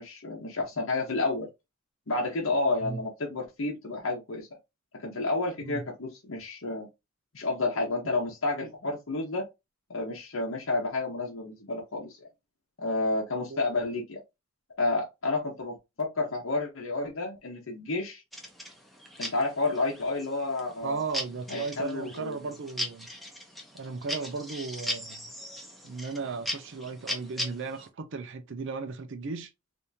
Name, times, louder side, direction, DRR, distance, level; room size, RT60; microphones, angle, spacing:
voice 1, 0.0-1.5 2.1-4.5 4.9-6.9 7.3-9.4 9.9-12.2 12.8-14.2 14.8-18.2 19.2-21.0 21.5-22.4, left 2 dB, 70° left, 0.9 m, -30 dB
sound 1, 18.3-27.9, equal, ahead, 0.7 m, -39 dB
voice 2, 20.8-23.1 23.7-25.3 25.8-29.5, right 4 dB, 60° right, 0.5 m, -36 dB
3.5 x 2.7 x 2.7 m
head